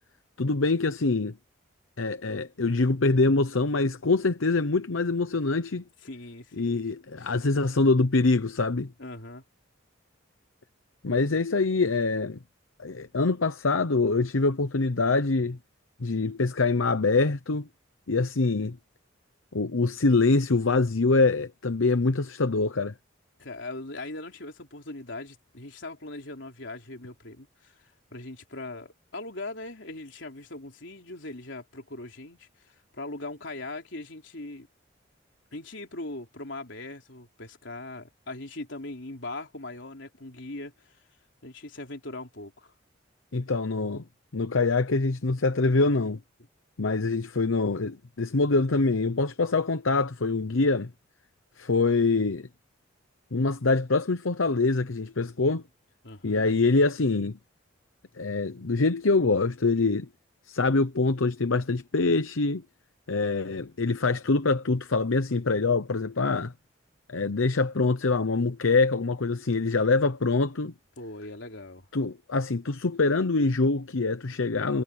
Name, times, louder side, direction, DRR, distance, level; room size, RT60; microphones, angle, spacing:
voice 1, 0.4-1.4 2.0-5.8 6.6-8.9 11.0-12.4 12.8-15.6 16.0-17.7 18.1-18.8 19.5-22.9 43.3-44.0 44.3-46.2 46.8-50.9 51.6-52.5 53.3-55.6 56.2-57.4 58.2-60.1 60.5-62.6 63.1-66.5 67.1-70.7 71.9-74.8, left 3 dB, 85° left, 0.9 m, -24 dB
voice 2, 6.0-6.8 7.2-7.3 9.0-9.4 23.4-27.8 28.1-34.7 35.5-41.0 41.4-42.7 56.0-56.4 71.0-71.9, left 2 dB, 65° left, 3.6 m, -40 dB
head